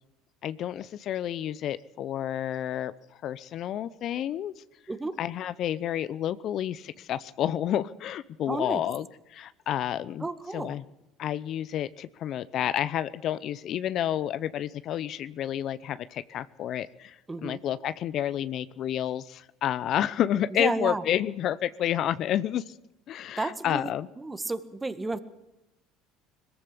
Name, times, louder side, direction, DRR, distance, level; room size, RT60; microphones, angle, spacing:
voice 1, 0.4-2.9 3.2-4.5 5.2-10.3 10.5-10.8 11.2-22.7 23.1-24.1, left 11 dB, 55° left, 16 dB, 0.7 m, -30 dB
voice 2, 4.9-5.2 8.5-8.8 10.2-10.8 17.3-17.6 20.5-21.0 23.4-25.2, right 3 dB, 15° right, 12 dB, 1.8 m, -32 dB
21.0 x 15.0 x 8.5 m, 0.92 s
hypercardioid pair, 70°, 0 cm